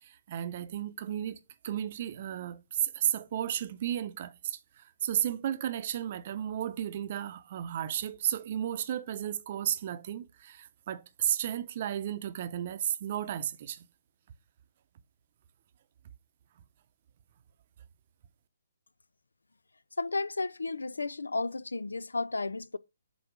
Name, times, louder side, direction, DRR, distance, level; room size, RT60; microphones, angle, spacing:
voice 1, 0.0-1.4 1.6-13.9, right 10 dB, 45° right, 0.7 m, -33 dB
voice 2, 20.0-22.8, left 3 dB, 90° left, 0.3 m, -33 dB
8.0 x 2.8 x 4.7 m
hypercardioid pair, 140°, 0 cm